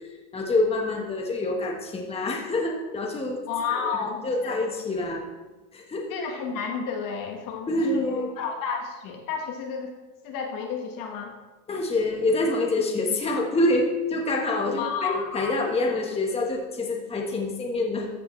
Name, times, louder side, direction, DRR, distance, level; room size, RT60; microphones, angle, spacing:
voice 1, 0.0-3.4 3.7-5.3 5.7-6.1 7.7-8.3 11.7-18.1, left 2 dB, 15° left, 0 dB, 1.3 m, -26 dB
voice 2, 3.5-4.6 6.1-9.9 10.2-11.3 14.6-15.6, left 6 dB, 55° left, 3 dB, 1.5 m, -31 dB
14.0 x 6.8 x 3.2 m, 1.2 s
supercardioid pair, 130°, 40 cm